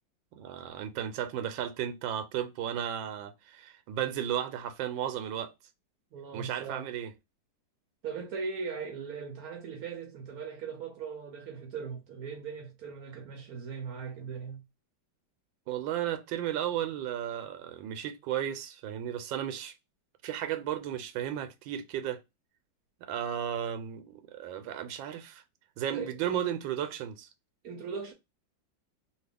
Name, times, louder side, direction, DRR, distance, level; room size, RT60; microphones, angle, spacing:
voice 1, 0.3-5.5 6.3-7.1 15.7-19.7 20.2-22.2 23.0-25.4 25.8-27.3, right 10 dB, 90° right, 1.3 m, -34 dB
voice 2, 6.1-6.9 8.0-14.6 25.9-26.1 27.6-28.1, right 5 dB, 70° right, 0.9 m, -39 dB
3.0 x 2.8 x 3.3 m
omnidirectional pair, 2.0 m